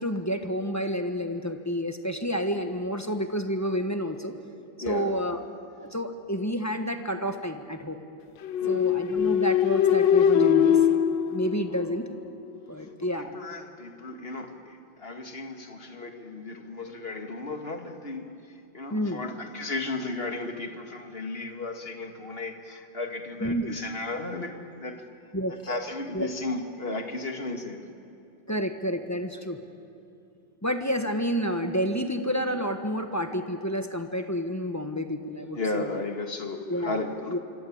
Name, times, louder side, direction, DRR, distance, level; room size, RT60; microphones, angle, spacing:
voice 1, 0.0-4.3 4.9-5.4 5.8-8.0 8.7-10.8 11.3-12.0 12.7-13.3 18.9-19.2 23.4-23.8 25.3-25.5 26.1-26.3 28.5-29.6 30.6-36.0 36.7-37.0 37.3-37.4, equal, 10° left, 6 dB, 1.0 m, -29 dB
voice 2, 4.8-5.1 8.6-8.9 11.7-11.9 12.8-25.0 25.5-27.8 29.4-29.5 35.5-37.4, left 2 dB, 30° left, 5 dB, 2.1 m, -35 dB
sound 1, 8.4-12.3, left 8 dB, 65° left, 1.5 m, -22 dB
26.0 x 25.0 x 8.7 m, 2.7 s
omnidirectional pair, 2.3 m